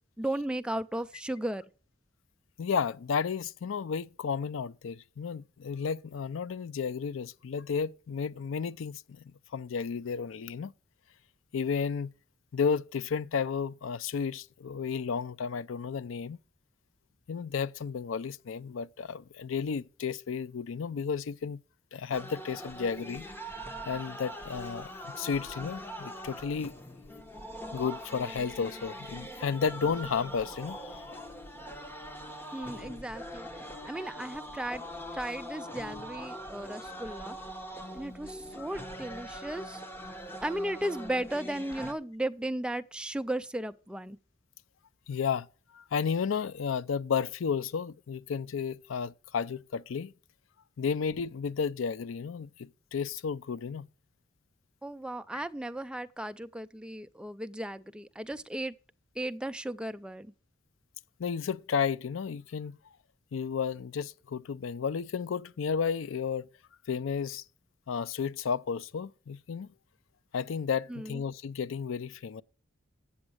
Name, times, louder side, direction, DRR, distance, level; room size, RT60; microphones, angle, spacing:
voice 1, 0.2-1.6 32.5-34.8 35.1-37.4 37.9-39.8 40.4-44.2 54.8-58.7 59.2-60.3 70.9-71.2, right 1 dB, 5° right, 0.4 m, -35 dB
voice 2, 2.6-10.7 11.5-12.1 12.5-16.4 17.3-21.6 21.9-23.2 23.9-24.9 25.2-26.7 27.7-31.1 32.6-32.7 38.6-38.7 45.1-45.5 45.7-50.1 50.8-53.9 55.3-55.4 61.2-62.8 63.3-66.5 66.9-67.4 67.9-69.7 70.3-72.4, left 6 dB, 80° left, 0.4 m, -32 dB
sound 1, 22.1-41.9, equal, 10° left, 1.0 m, -42 dB
8.6 x 7.1 x 6.3 m
head